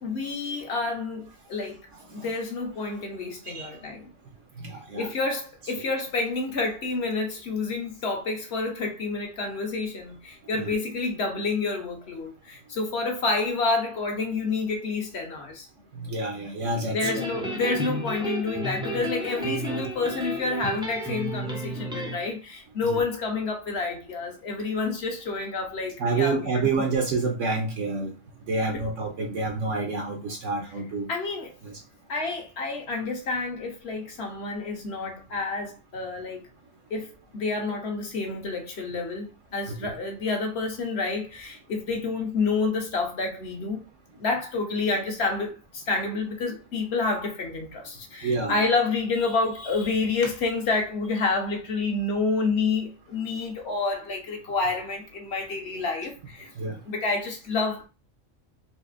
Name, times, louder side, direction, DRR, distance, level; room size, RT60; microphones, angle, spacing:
voice 1, 0.0-1.9 2.1-4.1 4.9-15.7 16.8-26.7 28.7-28.8 31.1-31.5 32.1-36.4 36.9-43.9 44.2-56.5 56.9-57.9, left 3 dB, 55° left, 1.1 m, -29 dB
voice 2, 4.6-5.1 10.6-10.7 16.0-17.0 22.9-23.0 26.0-28.1 28.5-31.1 31.6-31.7 39.7-39.9 48.2-48.6 56.6-56.8, right 3 dB, 70° right, 1.0 m, -28 dB
sound 1, 17.0-22.2, right 1 dB, 5° right, 0.4 m, -32 dB
4.1 x 2.6 x 2.5 m
omnidirectional pair, 1.4 m